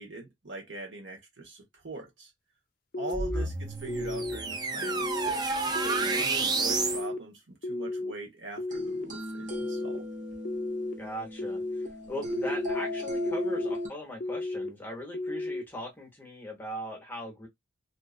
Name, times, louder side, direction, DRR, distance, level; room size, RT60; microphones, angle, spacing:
voice 1, 0.0-2.3 3.0-10.1, right 3 dB, 70° right, 1.1 m, -42 dB
sound 1, 2.9-3.4 3.9-4.4 4.8-5.3 5.7-6.2 6.7-7.2 7.6-8.1 8.6-9.0 9.5-10.0 10.4-10.9 11.4-11.9 12.3-12.8 13.3-13.7 14.2-14.7 15.1-15.6, left 2 dB, 50° left, 0.4 m, -33 dB
sound 2, 3.1-7.0, right 3 dB, 20° right, 0.3 m, -30 dB
sound 3, 8.7-13.9, left 1 dB, 40° right, 0.8 m, -36 dB
voice 2, 11.0-17.5, equal, 10° left, 0.8 m, -40 dB
2.7 x 2.4 x 2.3 m
head